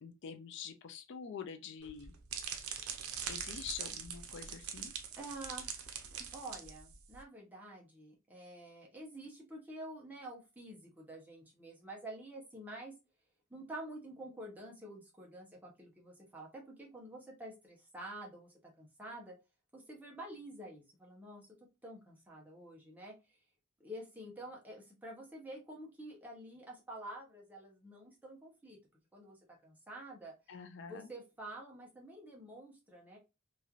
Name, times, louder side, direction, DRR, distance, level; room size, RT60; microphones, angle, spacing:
voice 1, 0.0-2.1 3.3-4.9 30.5-31.1, left 7 dB, 60° left, 0.3 m, -46 dB
sound 1, 1.8-7.2, right 7 dB, 90° right, 0.6 m, -43 dB
voice 2, 5.2-6.0 6.3-12.9 13.5-19.3 19.7-21.5 21.8-23.4 23.8-28.8 29.1-30.3 30.9-33.2, right 1 dB, 10° right, 0.8 m, -48 dB
3.0 x 2.5 x 2.4 m
head